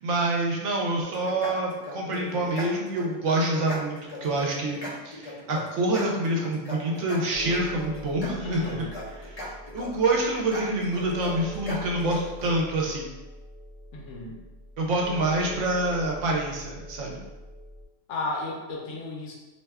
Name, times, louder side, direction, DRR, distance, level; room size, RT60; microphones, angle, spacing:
voice 1, 0.0-4.8 5.0-8.9 9.1-13.1 14.8-17.2, right 2 dB, 70° right, -1 dB, 0.9 m, -27 dB
sound 1, 1.0-12.5, left 2 dB, 45° left, 0.5 m, -38 dB
sound 2, 7.3-17.9, equal, 35° right, 0.6 m, -42 dB
voice 2, 8.4-8.9 13.9-14.4 18.1-19.3, left 2 dB, 70° left, -2 dB, 1.0 m, -34 dB
2.6 x 2.2 x 3.3 m, 1.1 s
omnidirectional pair, 1.4 m